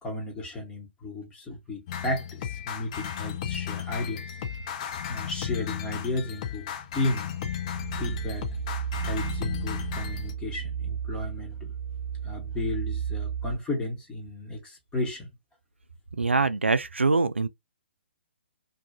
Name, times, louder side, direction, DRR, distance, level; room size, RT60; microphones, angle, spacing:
voice 1, 0.0-4.4 5.1-7.3 7.9-8.5 9.0-11.7 12.2-15.3, left 2 dB, 10° left, 1.0 m, -33 dB
sound 1, 1.9-10.3, left 9 dB, 35° left, 0.5 m, -34 dB
sound 2, 7.6-13.6, right 8 dB, 25° right, 1.1 m, -33 dB
voice 2, 16.2-17.5, right 3 dB, 85° right, 0.3 m, -23 dB
2.6 x 2.4 x 2.3 m
figure-of-eight pair, 130°, 6 cm